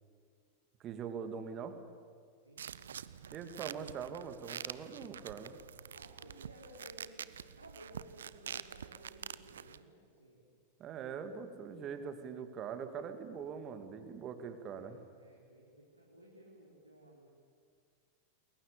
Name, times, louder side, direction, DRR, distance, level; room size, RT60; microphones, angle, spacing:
voice 1, 0.8-1.8 3.3-5.6 10.8-15.0, right 7 dB, 30° right, 8 dB, 2.5 m, -43 dB
voice 2, 2.4-3.0 3.4-3.9 5.9-10.5 14.7-17.3, right 1 dB, 85° right, -4 dB, 4.4 m, -57 dB
sound 1, 2.6-9.8, right 8 dB, 65° right, 0.8 m, -46 dB
29.0 x 21.5 x 8.6 m, 2.1 s
figure-of-eight pair, 90°, 0 cm